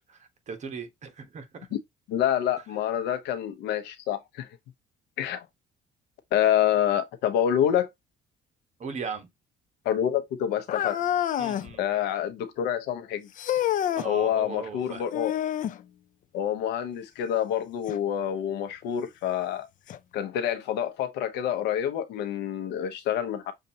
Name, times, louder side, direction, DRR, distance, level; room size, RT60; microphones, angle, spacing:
voice 1, 0.1-1.5 8.8-9.3 11.4-11.8 14.0-15.0, right 4 dB, 45° right, 1.3 m, -37 dB
voice 2, 2.1-4.5 5.2-5.5 6.3-7.9 9.8-11.0 11.8-13.3 14.0-15.4 16.3-19.7 20.1-23.5, left 10 dB, 90° left, 1.0 m, -27 dB
sound 1, 10.7-11.7 13.4-14.1 15.1-15.8 17.9-18.0 18.8-18.9 19.9-20.0, left 11 dB, 50° left, 0.5 m, -27 dB
6.5 x 2.6 x 2.8 m
cardioid pair, 110°, 17 cm